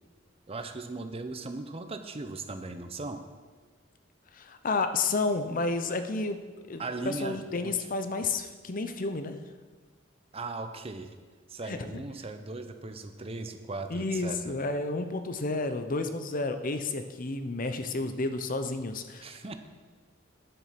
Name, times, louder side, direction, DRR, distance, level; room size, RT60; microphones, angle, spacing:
voice 1, 0.5-3.2 6.8-7.7 10.3-11.1 11.5-14.6 19.2-19.5, right 3 dB, 30° right, 8 dB, 0.7 m, -38 dB
voice 2, 4.3-6.4 6.7-9.4 11.7-12.0 13.9-19.3, left 3 dB, 45° left, 8 dB, 0.7 m, -31 dB
10.5 x 7.6 x 5.8 m, 1.4 s
head